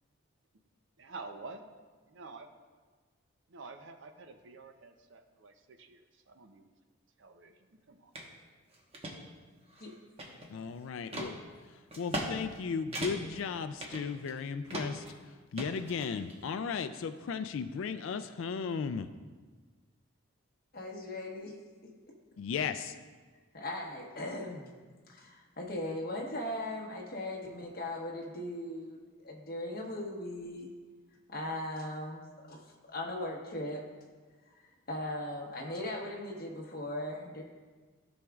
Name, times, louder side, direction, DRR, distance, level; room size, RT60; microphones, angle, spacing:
voice 1, 1.0-1.7 2.2-2.5 3.5-6.7 7.2-8.1, right 3 dB, 65° right, 7 dB, 0.6 m, -49 dB
sound 1, 8.1-8.3 8.7-9.1 9.7-10.6 11.1-11.3 11.9-12.3 12.6-12.7 12.9-13.4 13.8-14.4 14.7-15.1 15.6-16.4, right 1 dB, 30° right, 1.1 m, -38 dB
voice 2, 10.5-11.4 12.0-15.0 15.5-19.1 22.4-23.0, left 6 dB, 70° left, 10 dB, 0.3 m, -35 dB
voice 3, 20.7-21.5 21.8-21.9 23.5-24.7 25.1-30.7 31.3-32.6 32.9-33.9 34.9-37.4, left 1 dB, 45° left, -1 dB, 1.2 m, -38 dB
14.5 x 6.2 x 2.4 m, 1.4 s
head